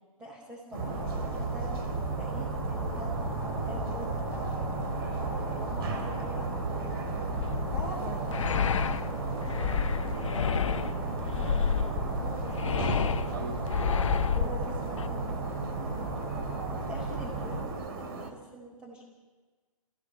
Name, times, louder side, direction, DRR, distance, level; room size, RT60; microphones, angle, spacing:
voice 1, 0.2-3.1 3.6-4.9 5.4-7.2 7.7-10.0 10.4-10.9 11.3-13.7 14.0-16.4 16.7-19.1, equal, 10° right, -6 dB, 6.3 m, -45 dB
sound 1, 0.7-18.3, right 3 dB, 40° right, 3.2 m, -38 dB
sound 2, 0.8-17.7, right 2 dB, 25° right, 5.8 m, -35 dB
sound 3, 7.4-15.1, left 7 dB, 60° left, 0.9 m, -30 dB
29.5 x 17.0 x 7.5 m, 1.3 s
figure-of-eight pair, 125°, 18 cm